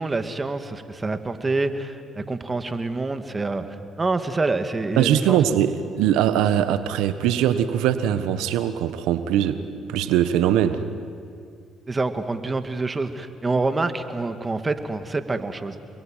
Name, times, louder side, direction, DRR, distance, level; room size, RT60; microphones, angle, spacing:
voice 1, 0.0-3.7 4.0-5.4 11.9-15.8, right 3 dB, 25° right, 8 dB, 2.2 m, -26 dB
voice 2, 5.0-9.6 9.9-10.8, right 10 dB, 85° right, 11 dB, 1.4 m, -21 dB
29.0 x 22.0 x 9.2 m, 2.3 s
supercardioid pair, 65°, 0 cm